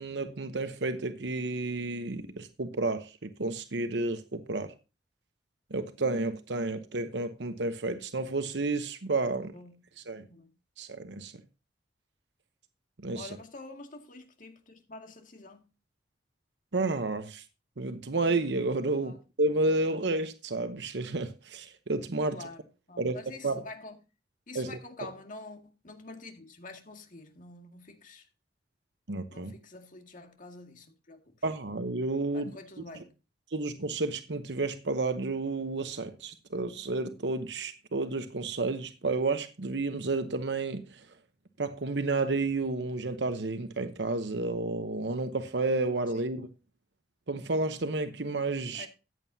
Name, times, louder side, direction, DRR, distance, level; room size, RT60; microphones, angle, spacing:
voice 1, 0.0-4.7 5.7-9.5 10.1-10.3 10.8-11.3 13.0-13.3 16.7-17.4 17.8-22.4 23.0-23.2 23.4-23.6 24.5-25.1 29.1-29.5 31.4-32.5 33.5-41.1 41.6-46.5 47.3-48.9, right 2 dB, 70° right, 1.0 m, -31 dB
voice 2, 10.2-10.6 13.1-15.6 18.9-19.2 22.3-24.0 24.5-28.3 29.3-31.4 32.3-33.1 46.1-46.3 48.7-48.9, left 3 dB, 50° left, 2.1 m, -47 dB
14.0 x 9.2 x 2.7 m
head